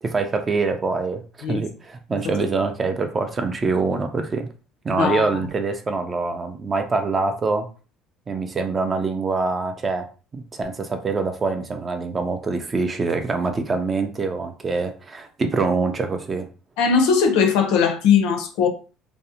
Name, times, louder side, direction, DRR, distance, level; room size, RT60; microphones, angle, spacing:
voice 1, 0.0-1.2 1.5-4.5 4.8-7.7 8.3-10.1 10.3-16.5, right 4 dB, 20° right, 0.3 m, -24 dB
voice 2, 4.9-5.2 16.8-18.7, left 6 dB, 80° left, 0.6 m, -19 dB
2.6 x 2.0 x 2.7 m
cardioid pair, 160°, 0 cm